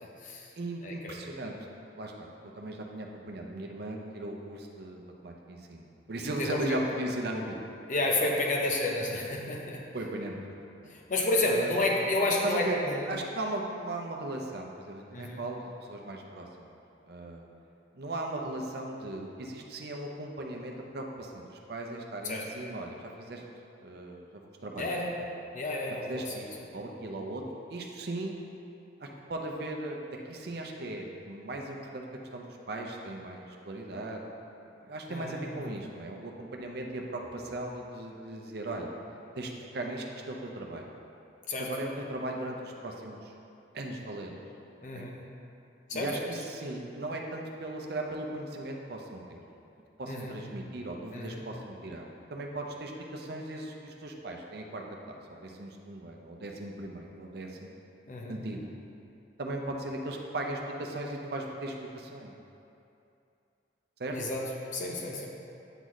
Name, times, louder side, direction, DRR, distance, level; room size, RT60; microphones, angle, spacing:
voice 1, 0.0-0.5 0.8-0.9 6.4-6.6 7.9-9.8 10.9-13.0 15.1-15.4 22.2-22.4 24.8-25.1 25.5-26.3 35.1-35.4 41.5-41.7 44.8-45.2 45.9-46.3 50.1-50.4 51.1-51.4 58.1-58.4 64.1-64.4 64.7-65.3, left 2 dB, 45° left, -1 dB, 0.8 m, -30 dB
voice 2, 0.6-2.3 2.6-5.8 6.1-7.6 9.9-10.9 11.4-11.7 12.3-16.7 17.1-17.5 17.9-23.4 23.8-24.9 25.2-25.3 26.0-27.4 27.7-28.4 29.0-34.2 34.7-38.9 39.4-40.9 41.6-43.3 43.7-44.4 44.9-45.1 45.9-49.4 50.0-55.1 55.4-57.7 58.3-58.7 59.4-62.3 64.0-64.2, right 2 dB, 60° right, 1 dB, 0.6 m, -38 dB
9.0 x 4.0 x 3.1 m, 2.7 s
head